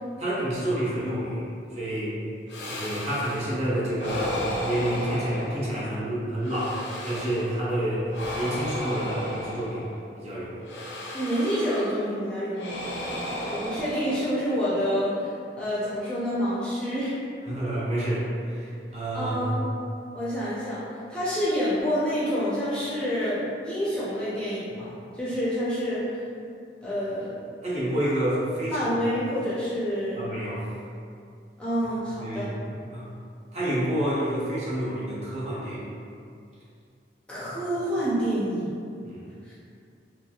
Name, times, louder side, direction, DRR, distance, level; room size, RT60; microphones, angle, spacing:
voice 1, 0.2-1.4 1.7-2.2 2.6-8.1 8.3-9.9 10.2-10.6 17.5-19.6 27.6-28.9 30.2-30.7 32.2-32.5 32.9-33.1 33.5-35.9 39.0-39.3, right 1 dB, 40° right, -8 dB, 0.6 m, -29 dB
sound 1, 2.5-3.6 4.0-6.0 6.4-7.6 8.1-10.1 10.7-12.1 12.5-14.7, equal, 80° left, 0.4 m, -34 dB
voice 2, 11.1-12.9 13.5-17.1 19.1-19.7 20.1-20.8 21.1-26.2 26.8-27.3 28.7-30.3 31.6-32.5 37.3-38.7 39.5-39.6, equal, 5° left, -10 dB, 0.4 m, -28 dB
2.9 x 2.3 x 2.3 m, 2.4 s
head